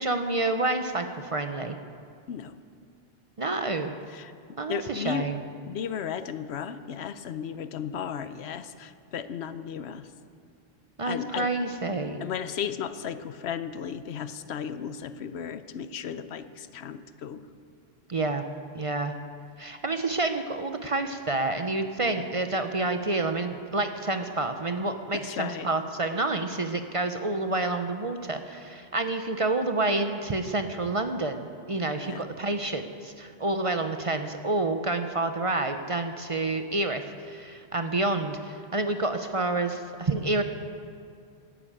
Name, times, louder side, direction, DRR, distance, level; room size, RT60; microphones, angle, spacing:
voice 1, 0.0-1.8 3.4-3.9 4.6-5.4 11.0-12.2 18.1-18.4 18.7-19.1 19.6-40.4, right 2 dB, 35° right, 7 dB, 0.7 m, -28 dB
voice 2, 4.1-5.3 5.7-10.1 11.0-11.5 12.2-17.5 22.0-22.3 25.1-25.7 32.0-32.2, left 8 dB, 75° left, 12 dB, 0.9 m, -35 dB
12.0 x 11.0 x 8.7 m, 2.4 s
omnidirectional pair, 1.1 m